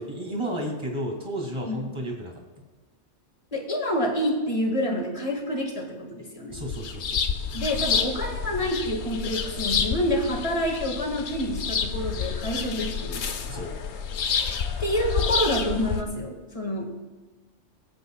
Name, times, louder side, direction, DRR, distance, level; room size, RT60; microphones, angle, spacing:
voice 1, 0.0-2.7 6.5-7.5 12.6-12.7 13.5-13.9, right 1 dB, 25° right, -1 dB, 2.3 m, -33 dB
voice 2, 3.5-6.6 7.5-13.2 14.8-17.0, equal, 30° left, 2 dB, 1.9 m, -28 dB
sound 1, 6.5-16.0, left 6 dB, 70° left, 1.0 m, -29 dB
23.5 x 8.3 x 2.3 m, 1.3 s
omnidirectional pair, 1.2 m